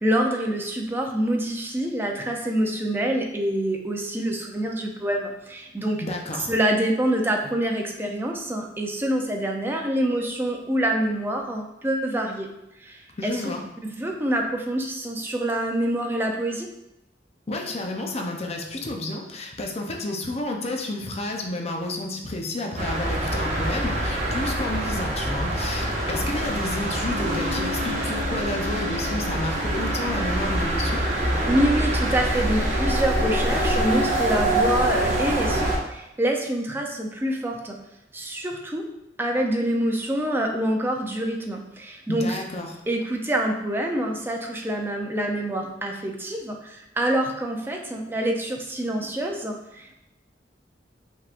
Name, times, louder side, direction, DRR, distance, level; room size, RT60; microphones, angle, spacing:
voice 1, 0.0-6.0 6.5-12.5 12.8-13.4 13.8-16.7 31.5-37.8 38.1-38.8 39.2-42.4 42.9-50.0, right 1 dB, 10° right, 1 dB, 0.5 m, -26 dB
voice 2, 6.0-6.5 13.2-13.6 17.5-31.0 42.1-42.8, left 2 dB, 35° left, 2 dB, 0.6 m, -31 dB
autobahn witzleben, 22.8-35.8, right 1 dB, 40° right, 1.0 m, -25 dB
5.4 x 3.5 x 2.5 m, 0.89 s
head